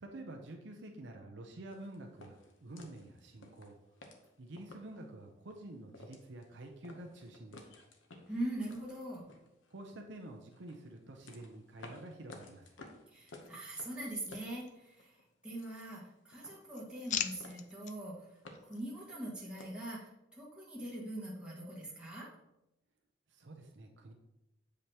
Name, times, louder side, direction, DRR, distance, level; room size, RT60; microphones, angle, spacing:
voice 1, 0.0-3.7 4.4-7.8 9.7-12.7 23.3-24.1, right 1 dB, 60° right, 2 dB, 0.6 m, -49 dB
sound 1, 1.7-5.1 5.5-5.6 5.9-6.5 6.8-10.0 10.5-15.2 15.5-16.1 16.3-17.1 17.4-17.9 18.2-19.9, left 2 dB, 75° left, 0.9 m, -55 dB
voice 2, 8.3-9.2 13.1-18.3 18.6-22.3, right 1 dB, 5° right, -6 dB, 1.7 m, -42 dB
sound 2, 14.0-15.1 15.5-16.2 16.5-18.0 18.5-18.8, left 9 dB, 40° left, 0.3 m, -42 dB
7.7 x 5.0 x 2.9 m, 0.89 s
head